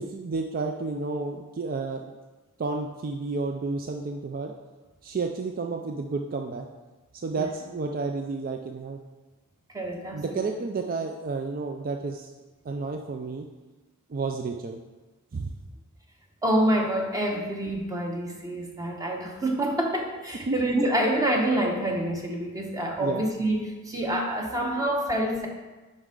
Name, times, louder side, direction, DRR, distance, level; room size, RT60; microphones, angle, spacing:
voice 1, 0.0-2.1 2.6-4.5 5.0-6.7 7.1-9.0 10.1-12.3 12.6-13.5 14.1-14.8 15.3-15.5 17.3-17.4 20.5-20.6 23.0-23.2, right 3 dB, 40° right, 3 dB, 0.4 m, -31 dB
voice 2, 9.7-10.5 16.4-25.5, right 1 dB, 15° right, 0 dB, 0.9 m, -27 dB
7.8 x 5.4 x 3.8 m, 1.2 s
head